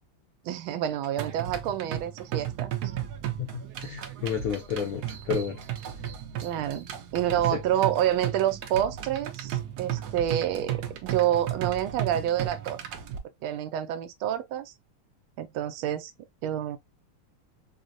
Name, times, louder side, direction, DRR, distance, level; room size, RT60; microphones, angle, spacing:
voice 1, 0.4-3.1 6.4-6.9 7.1-12.8 13.4-14.7 15.4-16.1 16.4-16.8, right 11 dB, 90° right, 1.4 m, -28 dB
sound 1, 1.2-13.2, right 11 dB, 70° right, 1.0 m, -34 dB
voice 2, 3.4-5.6, left 8 dB, 70° left, 0.8 m, -31 dB
4.9 x 2.1 x 2.5 m
omnidirectional pair, 2.2 m